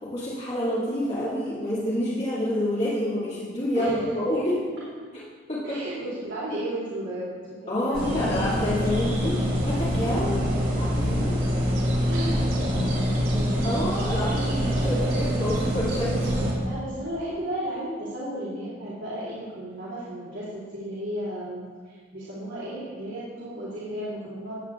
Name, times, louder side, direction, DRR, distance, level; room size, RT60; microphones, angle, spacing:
voice 1, 0.0-4.6 5.5-5.8 7.7-10.3 10.8-11.3 13.6-16.3, left 1 dB, 35° left, -9 dB, 2.2 m, -28 dB
voice 2, 5.6-8.3 10.4-10.7 12.0-14.2 14.8-15.2 16.6-24.5, right 1 dB, 75° right, -9 dB, 2.9 m, -34 dB
sound 1, 7.9-16.5, equal, 55° right, 2.9 m, -25 dB
16.0 x 8.3 x 2.4 m, 1.5 s
head